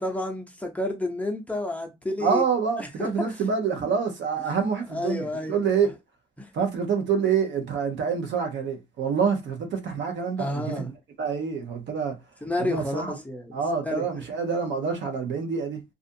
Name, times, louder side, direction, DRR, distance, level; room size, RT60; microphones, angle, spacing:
voice 1, 0.0-2.4 2.8-3.4 3.8-3.9 4.4-4.6 4.9-5.6 6.4-6.5 10.4-10.9 12.4-14.4, left 1 dB, 5° left, 0.6 m, -31 dB
voice 2, 2.2-5.9 6.5-10.8 11.2-12.1 12.6-13.1 13.5-15.8, right 6 dB, 70° right, 0.8 m, -26 dB
2.5 x 2.4 x 2.6 m
cardioid pair, 90°, 20 cm